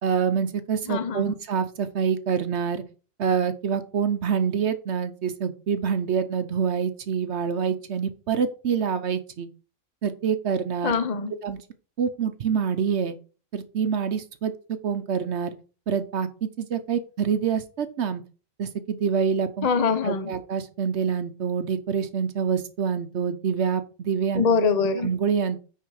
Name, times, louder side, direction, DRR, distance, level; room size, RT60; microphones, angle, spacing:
voice 1, 0.0-2.8 3.2-9.5 10.0-10.9 11.4-11.6 12.0-13.2 13.5-14.5 14.8-15.5 15.9-18.2 18.6-19.7 20.0-24.4 25.0-25.6, right 7 dB, 55° right, 0.9 m, -26 dB
voice 2, 0.9-1.3 10.8-11.3 19.6-20.3 24.4-25.1, left 5 dB, 45° left, 0.5 m, -23 dB
9.3 x 4.2 x 4.7 m
omnidirectional pair, 1.5 m